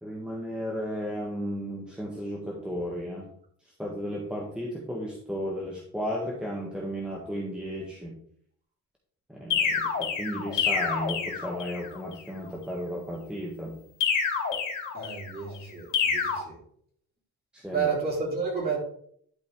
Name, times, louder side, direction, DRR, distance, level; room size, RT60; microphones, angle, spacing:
voice 1, 0.0-3.3 3.8-8.1 9.3-13.8 17.5-17.9, equal, 5° right, -2 dB, 1.6 m, -34 dB
sound 1, 9.5-11.9 14.0-15.4 15.9-16.4, left 6 dB, 65° left, 2.8 m, -28 dB
voice 2, 14.9-16.6 17.7-18.8, right 5 dB, 30° right, -3 dB, 4.0 m, -30 dB
11.5 x 5.1 x 3.6 m, 0.63 s
cardioid pair, 125°, 32 cm